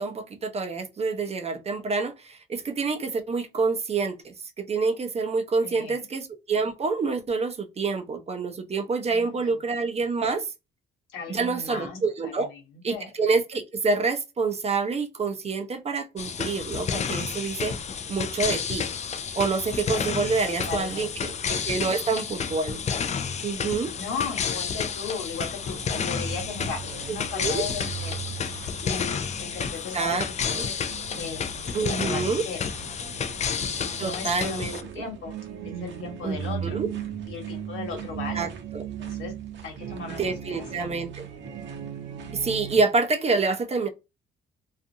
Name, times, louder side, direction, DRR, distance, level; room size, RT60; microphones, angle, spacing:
voice 1, 0.0-10.5 11.3-12.5 12.8-17.7 18.1-18.9 19.4-22.8 23.4-23.9 27.1-27.7 29.6-29.7 29.9-30.7 31.7-32.4 34.0-35.1 36.2-36.9 38.3-38.9 40.1-41.3 42.3-43.9, right 4 dB, 30° right, 0.5 m, -27 dB
voice 2, 5.6-6.0 9.1-9.5 11.1-12.6 12.9-13.1 20.4-21.1 23.9-28.3 28.8-30.2 30.6-30.7 31.1-31.4 32.0-32.6 33.0-33.1 33.9-34.7 34.9-35.3 35.8-36.8 37.3-38.5 39.0-39.3 39.6-40.9, left 5 dB, 85° left, 1.3 m, -36 dB
sound 1, 16.2-34.8, left 6 dB, 35° left, 0.4 m, -31 dB
sound 2, 25.6-42.8, right 8 dB, 65° right, 0.7 m, -38 dB
2.4 x 2.4 x 2.6 m
cardioid pair, 90°, 20 cm